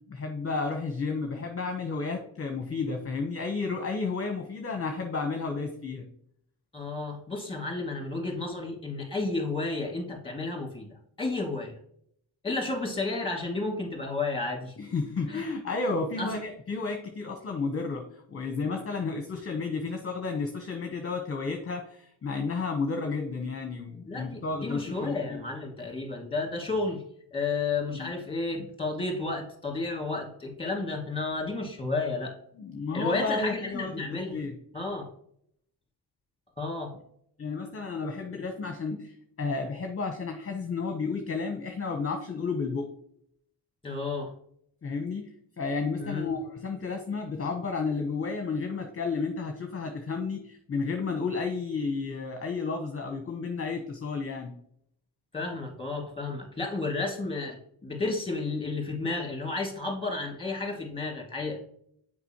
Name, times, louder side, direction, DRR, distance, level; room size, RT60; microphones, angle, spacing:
voice 1, 0.1-6.0 14.8-25.4 27.9-28.1 32.6-33.9 34.3-34.5 37.4-42.9 44.8-45.2 45.6-54.5, left 4 dB, 30° left, 4 dB, 0.9 m, -32 dB
voice 2, 6.7-11.8 12.4-14.7 15.3-15.4 16.2-16.3 24.1-27.0 27.3-32.3 32.9-34.3 34.7-35.1 36.6-36.9 43.8-44.3 46.0-46.3 55.3-61.6, left 3 dB, 10° left, 2 dB, 2.1 m, -32 dB
6.7 x 5.0 x 2.9 m, 0.68 s
cardioid pair, 75°, 46 cm